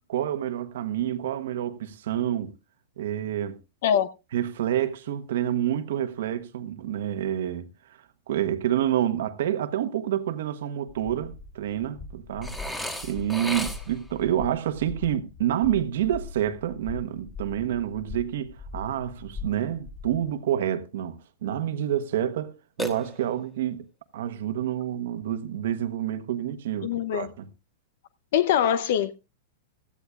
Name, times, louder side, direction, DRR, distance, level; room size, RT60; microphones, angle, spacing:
voice 1, 0.1-2.5 3.0-3.6 4.3-7.7 8.3-12.5 13.0-22.5 22.8-23.8 24.1-27.5, right 11 dB, 70° right, 1.2 m, -28 dB
sound 1, 10.9-20.3, left 3 dB, 25° left, 3.5 m, -41 dB
Burping eructation, 12.4-14.1 22.8-23.6, equal, 5° left, 1.3 m, -34 dB
voice 2, 26.8-27.3 28.3-29.1, left 9 dB, 60° left, 0.7 m, -23 dB
16.5 x 13.5 x 2.4 m
supercardioid pair, 155°, 0 cm